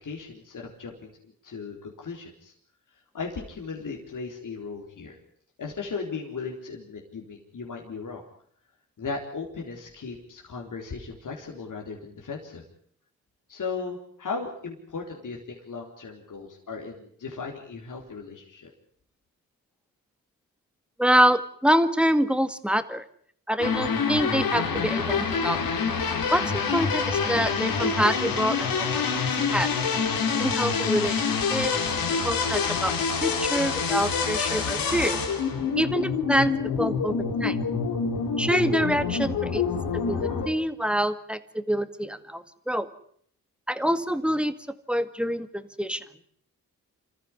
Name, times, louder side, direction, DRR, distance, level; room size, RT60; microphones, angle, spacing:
voice 1, 0.0-2.5 3.1-5.2 5.6-8.2 9.0-12.6 13.5-18.7, left 4 dB, 65° left, 0 dB, 4.1 m, -37 dB
voice 2, 21.0-23.0 23.5-25.6 26.3-28.9 29.5-29.7 30.4-31.7 32.1-32.9 33.2-35.2 35.8-37.1 37.4-37.6 38.4-39.6 39.9-42.9 43.7-44.5 44.9-46.0, equal, 5° right, 11 dB, 2.0 m, -26 dB
sound 1, 23.6-40.5, left 5 dB, 90° left, 3.6 m, -26 dB
26.5 x 14.5 x 9.8 m, 0.64 s
cardioid pair, 65°, 34 cm